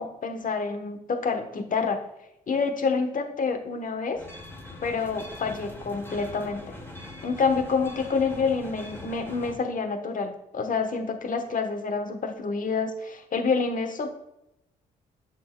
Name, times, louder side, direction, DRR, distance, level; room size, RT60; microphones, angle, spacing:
voice 1, 0.0-2.0 2.5-4.2 4.8-6.8 7.2-14.1, left 4 dB, 45° left, 7 dB, 1.1 m, -28 dB
sound 1, 4.1-9.6, left 2 dB, 10° left, 2.1 m, -42 dB
8.4 x 7.1 x 2.3 m, 0.85 s
hypercardioid pair, 45°, 20 cm